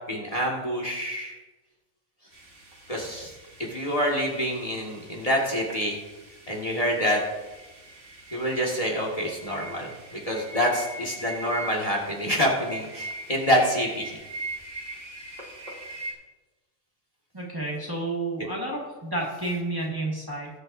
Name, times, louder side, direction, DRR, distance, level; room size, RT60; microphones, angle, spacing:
voice 1, 0.1-1.4 2.9-3.3 3.7-6.0 6.5-7.2 8.3-14.2, equal, 25° left, -1 dB, 1.9 m, -26 dB
sound 1, 2.3-16.1, right 2 dB, 60° right, 2.3 m, -41 dB
voice 2, 17.3-20.5, right 2 dB, 15° right, -3 dB, 1.8 m, -30 dB
20.5 x 7.6 x 2.6 m, 1.2 s
omnidirectional pair, 1.4 m